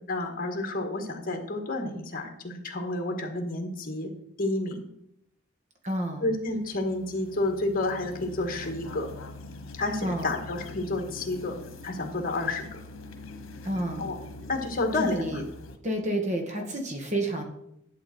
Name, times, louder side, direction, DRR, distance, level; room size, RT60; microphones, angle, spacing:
voice 1, 0.1-4.1 4.4-4.9 6.2-9.1 9.7-11.6 11.8-12.8 14.0-14.2 14.5-15.4 16.6-16.7, left 2 dB, 45° left, 4 dB, 1.8 m, -30 dB
voice 2, 5.8-6.2 10.0-10.3 13.6-14.1 15.0-15.4 15.8-17.4, right 1 dB, 35° right, 3 dB, 1.9 m, -30 dB
sound 1, 6.4-15.8, left 2 dB, 75° left, 1.2 m, -43 dB
11.5 x 7.3 x 4.4 m, 0.76 s
head